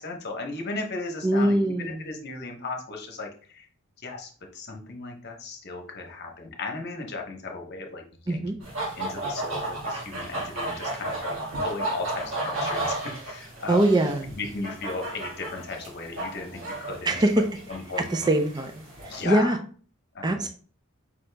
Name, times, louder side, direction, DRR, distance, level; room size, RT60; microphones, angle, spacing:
voice 1, 0.0-3.7 4.0-8.6 9.0-13.9 14.4-18.2 19.1-19.6 20.1-20.5, left 3 dB, 50° left, 3 dB, 1.0 m, -36 dB
voice 2, 1.2-2.1 8.3-8.6 13.7-14.3 17.1-17.4 18.1-18.7 19.2-19.6 20.2-20.5, right 1 dB, 20° right, 5 dB, 0.4 m, -22 dB
sound 1, 8.6-19.2, right 1 dB, 70° right, 1.8 m, -33 dB
5.1 x 2.9 x 3.3 m, 0.43 s
head